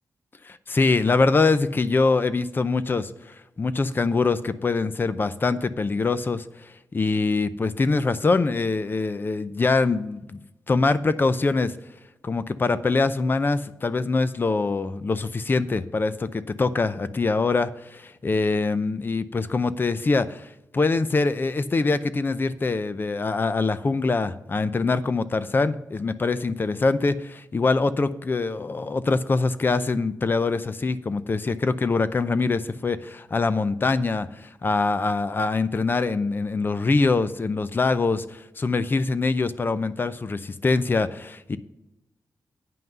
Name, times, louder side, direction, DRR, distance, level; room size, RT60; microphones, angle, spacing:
voice 1, 0.4-3.1 3.6-6.4 6.9-11.7 12.2-41.6, left 3 dB, 30° left, 13 dB, 0.5 m, -24 dB
9.3 x 5.7 x 6.6 m, 0.94 s
wide cardioid pair, 125°, 7 cm